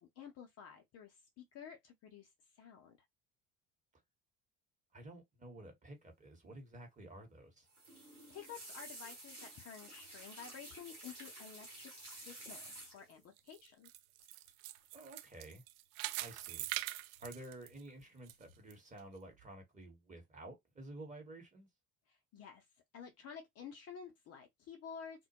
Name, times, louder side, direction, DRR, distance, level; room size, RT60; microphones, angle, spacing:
voice 1, 0.0-2.3 2.6-3.0 8.3-13.9 22.1-22.6 22.9-25.3, left 7 dB, 35° left, 0.6 m, -52 dB
voice 2, 4.9-7.7 14.9-15.6 16.2-16.7 17.2-21.7, right 1 dB, 15° right, 1.0 m, -52 dB
sound 1, 7.7-13.2 14.2-14.5 14.8-15.1 16.3-16.9 17.2-17.8 18.2-18.6 19.0-19.1, right 1 dB, 90° right, 1.0 m, -52 dB
sound 2, 13.4-18.3 18.7-18.8 19.4-19.5, right 18 dB, 55° right, 0.5 m, -43 dB
2.2 x 2.1 x 2.8 m
figure-of-eight pair, 55°, 43 cm